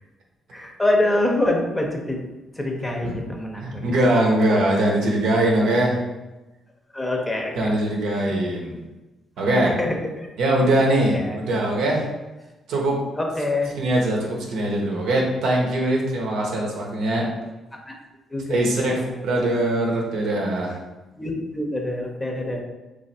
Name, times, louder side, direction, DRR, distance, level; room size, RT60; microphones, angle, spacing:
voice 1, 0.5-2.2 2.5-4.0 6.9-7.5 8.1-8.4 9.6-10.3 11.1-11.4 13.2-13.7 17.9-18.0 18.3-18.7 18.9-19.2 21.2-22.6, left 1 dB, 10° left, 1 dB, 0.7 m, -25 dB
voice 2, 3.6-6.0 7.6-8.7 9.4-9.7 10.4-12.1 12.7-13.0 13.8-17.3 18.5-20.8, right 1 dB, 80° right, -1 dB, 0.8 m, -22 dB
3.1 x 2.5 x 4.1 m, 1.1 s
cardioid pair, 90°, 0 cm